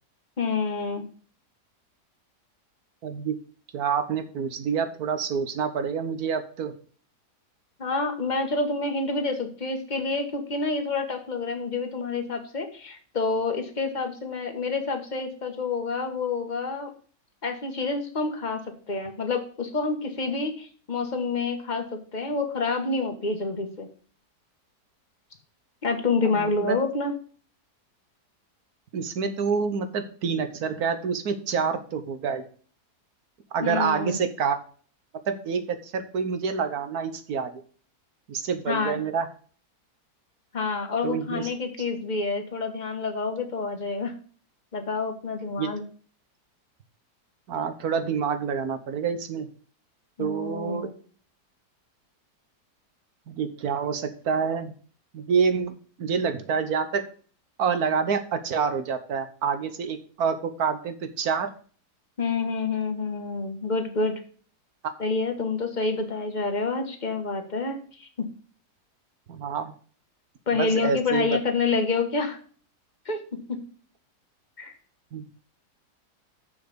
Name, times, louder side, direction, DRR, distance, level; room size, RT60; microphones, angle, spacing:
voice 1, 0.4-1.0 7.8-16.9 17.4-23.9 25.8-27.1 33.6-34.2 38.7-39.0 40.5-44.1 44.7-45.8 50.2-50.9 62.2-64.2 65.0-68.3 70.5-72.4 73.0-73.6 74.6-74.7, left 3 dB, 30° left, 5 dB, 1.4 m, -28 dB
voice 2, 3.0-3.3 3.7-6.7 26.3-26.7 28.9-32.5 33.5-34.6 35.3-37.6 38.3-39.3 41.0-41.5 45.6-45.7 47.5-49.5 50.2-50.9 53.3-54.7 55.1-55.7 56.0-57.0 57.6-61.5 64.8-64.9 69.3-69.7 70.5-71.4 75.1-75.2, right 6 dB, 65° right, 10 dB, 1.5 m, -27 dB
7.0 x 5.9 x 6.8 m, 0.43 s
omnidirectional pair, 1.8 m